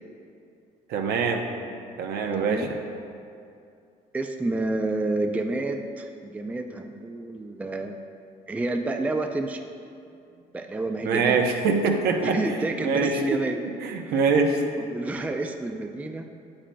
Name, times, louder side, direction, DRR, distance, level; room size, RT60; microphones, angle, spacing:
voice 1, 0.9-1.4 2.0-2.7 11.0-12.4 12.8-13.2 13.8-14.6, right 4 dB, 70° right, 4 dB, 0.8 m, -23 dB
voice 2, 2.3-2.7 4.1-8.0 8.5-9.6 10.5-11.4 12.2-13.6 14.0-14.2 14.8-16.3, right 2 dB, 10° right, 5 dB, 0.4 m, -29 dB
8.9 x 8.7 x 2.2 m, 2.5 s
cardioid pair, 110°, 17 cm